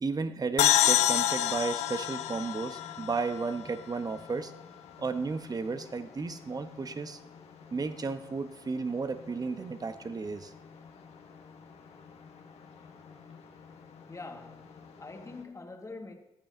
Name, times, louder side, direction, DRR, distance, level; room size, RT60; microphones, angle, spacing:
voice 1, 0.0-4.5 5.0-7.2 7.7-10.5, right 4 dB, 35° right, 0.8 m, -33 dB
sound 1, 0.6-4.1, left 12 dB, 85° left, 0.4 m, -27 dB
sound 2, 0.6-15.4, left 5 dB, 70° left, 1.2 m, -52 dB
voice 2, 14.1-16.1, left 3 dB, 30° left, 1.6 m, -44 dB
14.0 x 8.7 x 2.7 m
supercardioid pair, 60°, 11 cm